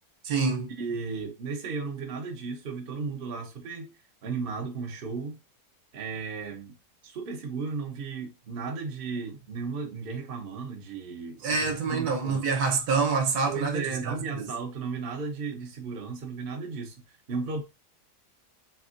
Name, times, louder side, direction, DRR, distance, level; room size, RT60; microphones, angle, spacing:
voice 1, 0.2-0.7 11.4-14.5, right 4 dB, 65° right, 1.3 m, -27 dB
voice 2, 0.8-3.9 4.2-5.4 5.9-6.7 7.0-12.4 13.5-17.0 17.3-17.6, right 4 dB, 50° right, 0.7 m, -35 dB
3.5 x 3.4 x 2.5 m
omnidirectional pair, 1.9 m